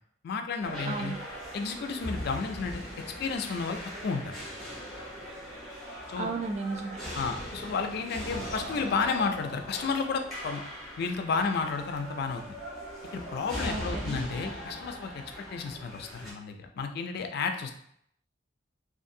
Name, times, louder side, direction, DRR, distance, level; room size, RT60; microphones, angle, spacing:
voice 1, 0.2-1.1 1.5-2.9 3.2-4.3 6.1-6.3 7.1-10.6 11.0-12.6 13.1-17.7, left 5 dB, 60° left, 6 dB, 0.3 m, -32 dB
sound 1, 0.6-16.3, equal, ahead, 1.0 m, -40 dB
voice 2, 0.9-1.2 6.2-7.0 13.7-14.2, right 3 dB, 35° right, 3 dB, 0.3 m, -34 dB
2.6 x 2.5 x 2.6 m, 0.68 s
head